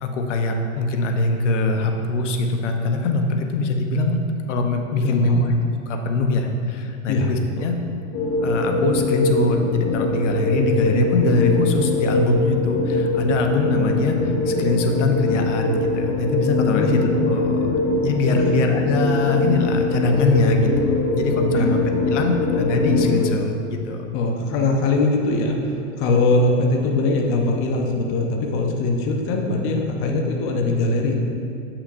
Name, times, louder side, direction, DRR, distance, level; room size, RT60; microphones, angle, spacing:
voice 1, 0.0-4.2 4.5-5.5 5.9-7.8 8.4-17.8 18.0-21.8 22.1-24.0, left 3 dB, 80° left, 4 dB, 0.8 m, -22 dB
voice 2, 5.0-5.5 7.1-7.3 7.6-7.7 16.7-16.9 18.4-18.6 21.5-21.8 24.1-31.1, left 2 dB, 35° left, 1 dB, 0.8 m, -21 dB
sound 1, 8.1-23.2, left 2 dB, 55° left, 1.5 m, -22 dB
8.2 x 5.8 x 2.6 m, 2.5 s
hypercardioid pair, 130°, 36 cm